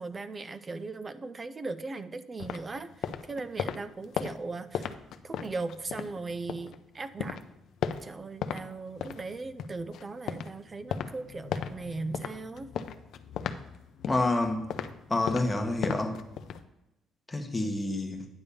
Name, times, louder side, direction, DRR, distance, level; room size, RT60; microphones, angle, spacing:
voice 1, 0.0-4.9 5.2-7.4 8.0-12.7, right 3 dB, 25° right, 13 dB, 0.5 m, -38 dB
sound 1, 2.4-6.8 7.1-8.6 8.9-16.7, left 8 dB, 65° left, 0.5 m, -37 dB
voice 2, 14.1-14.7 15.1-16.2 17.3-18.3, left 2 dB, 15° left, 3 dB, 1.1 m, -28 dB
9.7 x 3.5 x 6.9 m, 0.93 s
cardioid pair, 135°, 0 cm